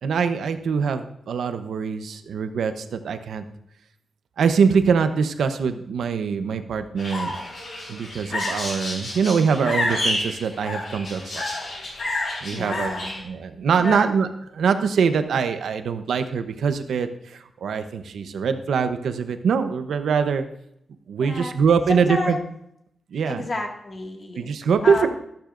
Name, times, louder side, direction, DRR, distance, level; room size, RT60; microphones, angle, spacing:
voice 1, 0.0-3.4 4.4-7.4 7.9-11.4 12.4-12.9 13.2-20.4 21.1-22.4 23.1-23.4 24.3-25.1, right 6 dB, 85° right, 9 dB, 0.8 m, -23 dB
sound 1, 7.0-13.2, left 1 dB, 55° left, 5.1 m, -29 dB
voice 2, 12.5-13.2 13.8-14.2 21.2-21.6 21.9-22.4 23.3-24.5 24.8-25.1, left 2 dB, 35° left, 1 dB, 1.9 m, -30 dB
13.5 x 12.0 x 2.6 m, 0.76 s
wide cardioid pair, 120°, 0 cm